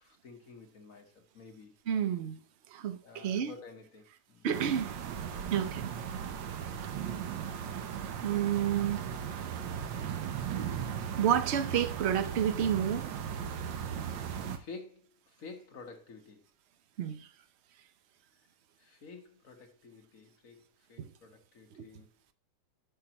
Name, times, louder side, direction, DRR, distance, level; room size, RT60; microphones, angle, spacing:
voice 1, 0.0-1.7 3.0-4.5 14.5-15.1 15.4-16.4 18.8-20.6 20.9-22.1, left 4 dB, 50° left, 1.6 m, -50 dB
voice 2, 1.9-2.4 2.7-3.5 4.4-4.9 5.5-5.9 8.2-9.0 11.2-13.1 17.0-17.3 21.0-21.1, right 9 dB, 55° right, 0.7 m, -30 dB
sound 1, 4.5-14.6, right 8 dB, 80° right, 1.6 m, -37 dB
11.0 x 6.0 x 2.9 m
omnidirectional pair, 2.0 m